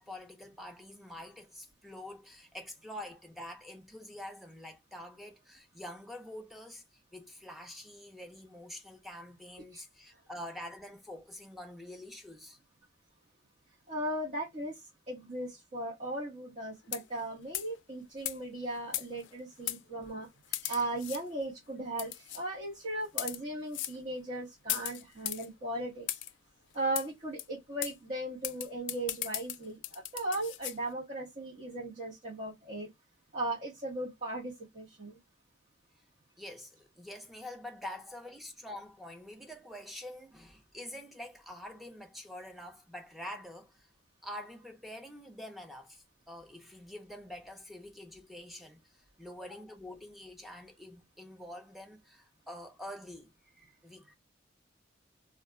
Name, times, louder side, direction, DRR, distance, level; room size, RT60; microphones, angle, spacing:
voice 1, 0.0-6.8 7.1-12.6 36.4-43.9 44.2-54.1, left 1 dB, ahead, 0.5 m, -46 dB
voice 2, 13.9-26.1 26.7-29.8 30.1-32.9 33.3-35.2, right 1 dB, 40° right, 1.0 m, -37 dB
sound 1, 16.8-17.2 17.5-17.8 18.2-18.4 18.9-19.3 19.7-19.8 20.5-21.2 22.0-22.4 23.0-23.4 23.7-24.0 24.7-25.5 26.1-26.3 26.9-27.1 27.4-27.5 27.8-27.9 28.4-30.8, left 14 dB, 75° left, 0.3 m, -36 dB
2.3 x 2.1 x 3.6 m
head